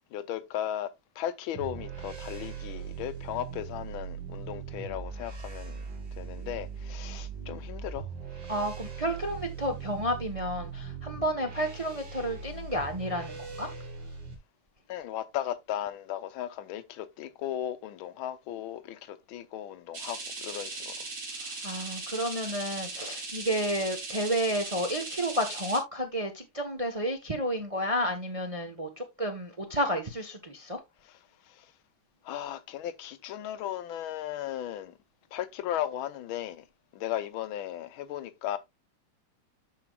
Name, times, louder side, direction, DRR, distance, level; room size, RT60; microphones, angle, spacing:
voice 1, 0.1-5.8 6.2-8.1 14.9-20.9 31.5-31.7 32.2-34.9 35.3-36.6 36.9-38.6, left 11 dB, 75° left, 1.6 m, -36 dB
sound 1, 1.5-14.4, right 6 dB, 75° right, 3.5 m, -40 dB
voice 2, 8.5-13.7 21.4-30.8, equal, 25° right, 0.7 m, -31 dB
sound 2, 19.9-25.8, right 3 dB, 55° right, 3.6 m, -38 dB
13.0 x 5.1 x 2.3 m
omnidirectional pair, 2.4 m